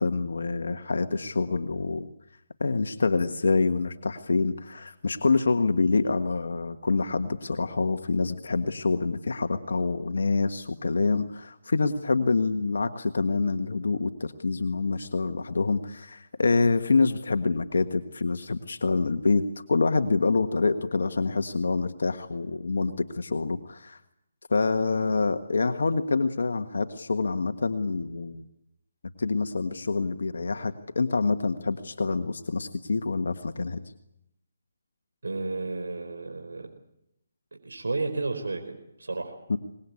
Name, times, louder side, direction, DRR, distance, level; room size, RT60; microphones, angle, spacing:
voice 1, 0.0-2.1 2.6-24.0 24.5-28.4 29.2-33.8 39.5-39.6, left 4 dB, 75° left, 8 dB, 1.5 m, -26 dB
voice 2, 35.2-36.7 37.5-39.4, right 3 dB, 80° right, 4 dB, 4.6 m, -32 dB
24.5 x 20.5 x 8.5 m, 0.83 s
figure-of-eight pair, 155°, 0 cm